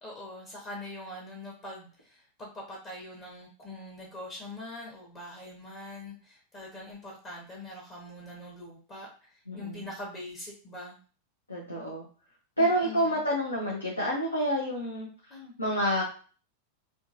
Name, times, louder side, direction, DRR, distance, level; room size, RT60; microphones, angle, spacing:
voice 1, 0.0-11.0 12.6-13.2 15.3-15.5, left 1 dB, 30° left, -2 dB, 0.9 m, -43 dB
voice 2, 9.5-9.9 11.5-12.0 12.6-15.1 15.6-16.0, equal, 80° left, -4 dB, 0.7 m, -28 dB
3.7 x 2.4 x 2.5 m, 0.39 s
figure-of-eight pair, 90°, 0 cm